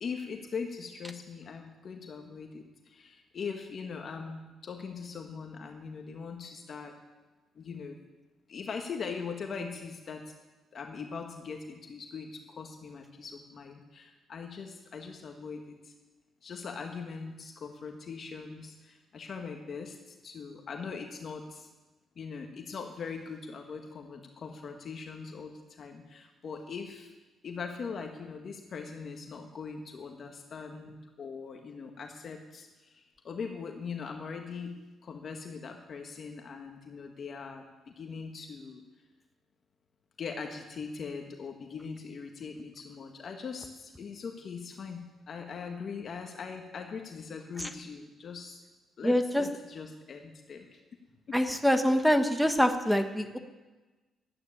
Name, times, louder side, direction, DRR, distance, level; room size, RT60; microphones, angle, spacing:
voice 1, 0.0-6.9 7.5-8.0 8.5-10.3 10.7-15.9 16.4-21.7 22.2-27.1 27.4-38.8 40.2-48.6 49.0-50.8 51.3-51.4, left 5 dB, 50° left, 3 dB, 1.5 m, -41 dB
voice 2, 49.0-49.4 51.3-53.4, equal, ahead, 7 dB, 1.1 m, -25 dB
12.0 x 9.7 x 10.0 m, 1.2 s
cardioid pair, 90°, 0 cm